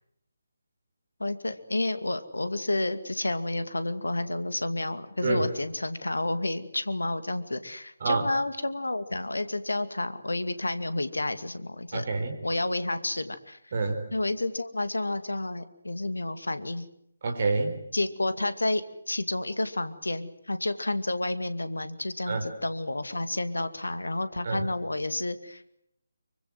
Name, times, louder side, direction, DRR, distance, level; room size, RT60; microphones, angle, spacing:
voice 1, 1.2-12.0 12.4-13.6 14.1-16.8 17.9-25.8, left 2 dB, 70° left, 11 dB, 2.3 m, -30 dB
voice 2, 11.9-12.4 13.7-14.0 17.2-17.8 22.3-22.4 24.4-24.7, right 3 dB, 40° right, 4 dB, 4.2 m, -27 dB
25.0 x 24.0 x 7.8 m, 0.74 s
figure-of-eight pair, 150°, 0 cm